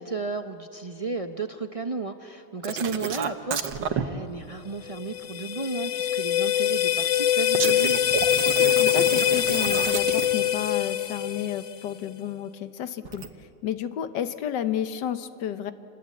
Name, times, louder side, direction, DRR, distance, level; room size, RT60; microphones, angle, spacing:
voice 1, 0.0-8.0, right 3 dB, 40° right, 6 dB, 0.5 m, -33 dB
sound 1, 2.6-4.0 7.5-10.5 13.0-13.3, right 7 dB, 80° right, 1.7 m, -30 dB
sound 2, 4.9-11.9, left 11 dB, 50° left, 1.1 m, -24 dB
voice 2, 8.8-13.2 13.6-15.7, left 10 dB, 75° left, 11 dB, 1.6 m, -31 dB
28.0 x 20.5 x 8.5 m, 2.7 s
omnidirectional pair, 1.9 m